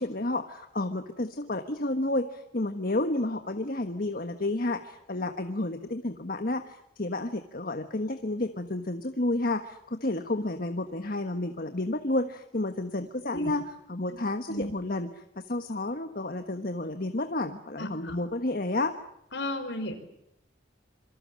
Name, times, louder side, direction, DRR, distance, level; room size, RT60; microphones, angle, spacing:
voice 1, 0.0-18.9, left 2 dB, 50° left, 7 dB, 1.4 m, -31 dB
voice 2, 17.8-18.2 19.3-19.9, left 1 dB, 65° left, 7 dB, 5.1 m, -34 dB
27.0 x 24.0 x 7.7 m, 0.80 s
head